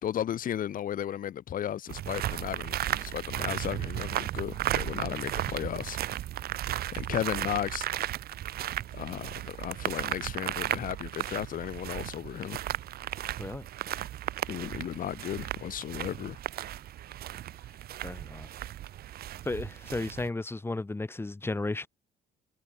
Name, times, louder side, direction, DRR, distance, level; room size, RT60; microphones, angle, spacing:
voice 1, 0.0-6.0 6.9-7.9 8.9-12.6 14.5-16.4, left 10 dB, 55° left, 2.7 m, -35 dB
sound 1, 1.9-20.3, right 13 dB, 65° right, 3.7 m, -35 dB
voice 2, 18.0-18.5 19.4-21.9, left 2 dB, 15° left, 4.5 m, -34 dB
cardioid pair, 110°, 17 cm